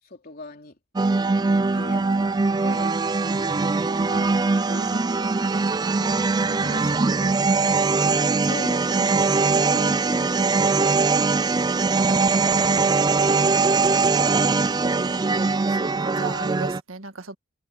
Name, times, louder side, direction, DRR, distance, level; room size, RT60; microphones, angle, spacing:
voice 1, 0.0-0.8 1.4-3.0 3.7-5.3 5.6-8.9 9.7-12.3 12.8-13.0 13.9-15.0, left 2 dB, 50° left, 3.3 m, -42 dB
sound 1, 1.0-16.8, right 4 dB, 20° right, 0.4 m, -21 dB
voice 2, 1.4-1.9 2.4-2.6 3.2-3.5 6.4-6.5 9.0-9.2 12.7-13.7 15.7-17.3, right 3 dB, 90° right, 1.8 m, -39 dB
head